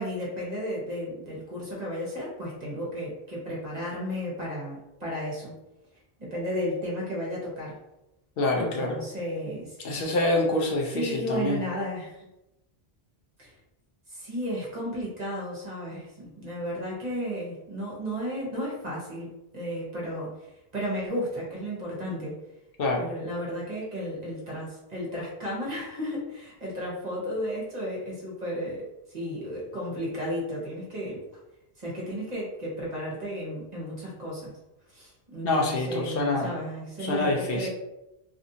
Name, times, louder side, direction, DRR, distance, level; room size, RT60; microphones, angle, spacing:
voice 1, 0.0-5.5 6.2-7.8 8.5-9.8 10.9-12.3 13.4-13.6 14.1-19.3 19.5-22.3 23.0-31.2 31.8-34.5 34.9-37.7, equal, 45° right, -5 dB, 1.0 m, -33 dB
voice 2, 8.4-9.0 9.8-11.6 22.8-23.0 35.4-36.5 37.0-37.7, left 2 dB, 65° left, -1 dB, 0.8 m, -26 dB
2.7 x 2.5 x 2.6 m, 0.92 s
omnidirectional pair, 1.1 m